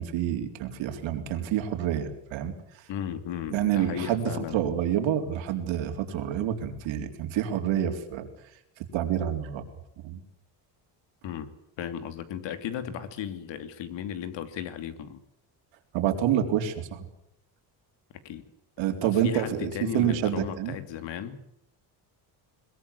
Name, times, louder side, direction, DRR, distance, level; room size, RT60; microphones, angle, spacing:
voice 1, 0.0-2.5 3.5-8.3 8.9-9.7 10.0-10.2 15.9-17.0 18.8-20.7, right 10 dB, 85° right, 6 dB, 3.9 m, -28 dB
voice 2, 2.9-4.6 11.2-11.5 11.8-15.2 18.2-18.4 19.0-21.4, left 9 dB, 70° left, 10 dB, 2.9 m, -35 dB
22.0 x 21.5 x 8.3 m, 0.78 s
cardioid pair, 140°, 45 cm